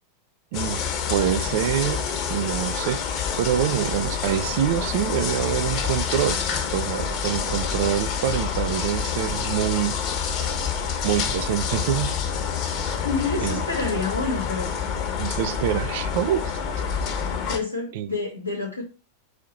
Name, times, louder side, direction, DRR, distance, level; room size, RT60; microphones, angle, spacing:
sound 1, 0.5-17.6, left 6 dB, 40° left, 0.9 m, -27 dB
voice 1, 0.5-0.8 1.1-2.0 2.3-3.0 3.4-6.4 6.7-9.9 11.0-12.1 13.4-13.6 15.2-16.9 17.9-18.1, right 11 dB, 50° right, 0.4 m, -25 dB
voice 2, 13.0-14.7 17.5-18.8, left 3 dB, 85° left, 0.9 m, -28 dB
4.8 x 2.7 x 3.9 m
figure-of-eight pair, 90°, 0 cm